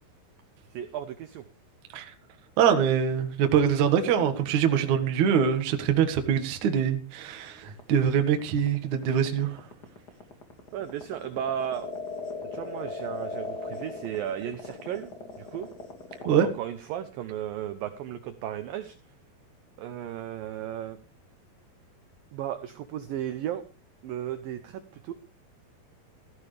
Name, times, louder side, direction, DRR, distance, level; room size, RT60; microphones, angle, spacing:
voice 1, 0.7-1.5 10.7-11.9 12.5-15.7 16.1-19.0 19.8-21.0 22.3-23.6 24.0-25.1, right 10 dB, 80° right, 10 dB, 2.0 m, -35 dB
voice 2, 2.6-9.6 16.2-16.5, right 8 dB, 55° right, 6 dB, 2.4 m, -24 dB
sound 1, 7.5-16.4, left 3 dB, 40° left, 1.4 m, -38 dB
16.5 x 14.5 x 3.3 m, 0.32 s
omnidirectional pair, 5.2 m